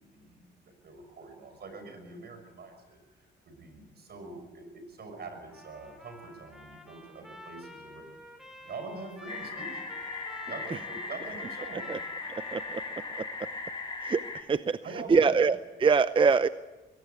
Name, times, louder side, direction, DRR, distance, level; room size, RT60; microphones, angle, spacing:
voice 1, 0.0-8.0 8.6-9.8 10.5-11.9 14.8-15.4, right 3 dB, 55° right, 7 dB, 6.1 m, -44 dB
Trumpet, 5.5-13.5, left 1 dB, ahead, 4.1 m, -50 dB
sound 1, 9.3-14.4, left 3 dB, 25° left, 3.6 m, -38 dB
voice 2, 12.3-12.8 13.2-13.5 14.0-16.5, right 5 dB, 25° right, 14 dB, 0.6 m, -25 dB
21.5 x 17.5 x 8.2 m, 1.2 s
cardioid pair, 90°, 20 cm